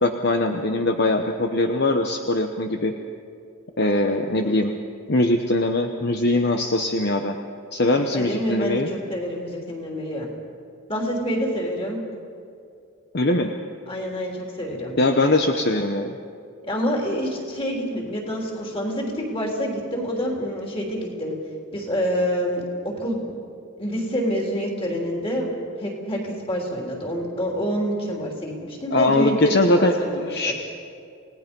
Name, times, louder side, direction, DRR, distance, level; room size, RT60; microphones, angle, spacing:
voice 1, 0.0-2.9 3.8-4.7 5.1-7.4 7.7-8.9 13.1-13.5 15.0-16.1 28.9-29.9 30.3-30.5, left 2 dB, 50° left, 5 dB, 0.9 m, -21 dB
voice 2, 4.4-4.8 7.9-10.3 10.9-12.0 13.9-15.0 16.7-21.4 21.7-23.2 23.8-25.5 25.8-30.5, equal, 25° left, -1 dB, 3.6 m, -27 dB
28.5 x 18.5 x 5.4 m, 2.4 s
head